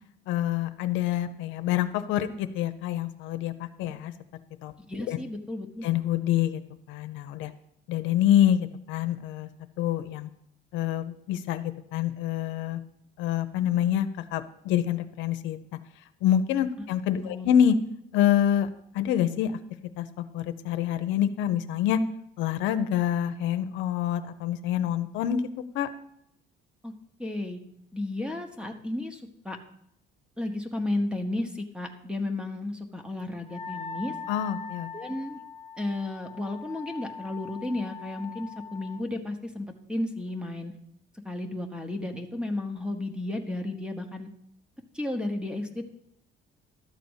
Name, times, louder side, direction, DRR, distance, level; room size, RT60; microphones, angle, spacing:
voice 1, 0.3-4.1 4.6-4.7 5.1-5.2 5.8-6.6 6.9-7.5 7.9-9.5 9.8-10.3 10.7-12.8 13.2-15.6 16.2-17.7 18.1-18.7 18.9-19.5 20.0-22.0 22.4-25.5 25.7-25.9 34.3-34.9, left 10 dB, 85° left, 9 dB, 0.7 m, -26 dB
voice 2, 4.9-5.9 17.2-17.5 26.8-26.9 27.2-27.6 27.9-29.6 30.4-34.1 34.9-35.4 35.8-40.7 41.2-44.3 44.9-45.9, left 2 dB, 5° right, 6 dB, 1.0 m, -33 dB
Wind instrument woodwind instrument, 33.5-39.0, left 5 dB, 25° left, 0.6 m, -41 dB
12.5 x 4.1 x 8.0 m, 0.74 s
cardioid pair, 140°, 19 cm